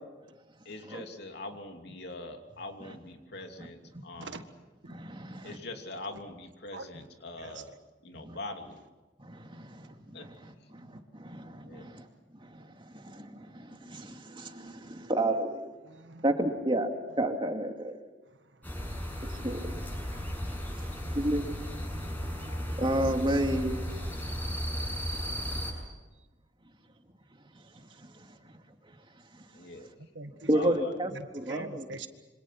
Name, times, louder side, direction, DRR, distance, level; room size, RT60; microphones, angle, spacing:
voice 1, 0.7-3.8 4.0-4.3 5.4-7.7 8.0-8.7 10.1-10.2 11.7-11.8 29.6-29.8 31.5-31.6, left 2 dB, 65° left, 2.9 m, -42 dB
voice 2, 4.9-5.6 8.2-8.4 9.2-9.8 10.1-12.1 12.5-15.7 16.2-17.9 19.4-19.8 21.1-21.5 22.8-23.8 28.0-28.1 30.5-31.9, right 1 dB, 25° right, 2.5 m, -31 dB
voice 3, 6.7-7.1 7.4-7.6 15.9-16.2 30.2-30.5 31.1-32.1, right 3 dB, 75° right, 1.8 m, -43 dB
sound 1, 18.6-25.7, equal, 10° left, 7.3 m, -35 dB
27.0 x 25.5 x 6.1 m
head